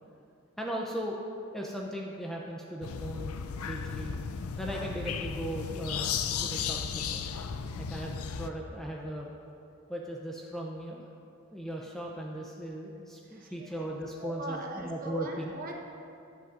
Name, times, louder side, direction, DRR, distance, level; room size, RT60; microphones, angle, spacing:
voice 1, 0.6-1.2 1.5-3.4 3.6-4.2 4.6-6.1 6.4-7.3 7.8-9.3 9.9-11.1 11.5-15.5, right 1 dB, ahead, -2 dB, 0.5 m, -37 dB
sound 1, 2.8-8.5, left 6 dB, 85° left, 0.5 m, -35 dB
voice 2, 13.3-13.7 14.2-15.7, right 1 dB, 40° right, 0 dB, 1.1 m, -40 dB
14.0 x 9.4 x 2.6 m, 2.5 s
head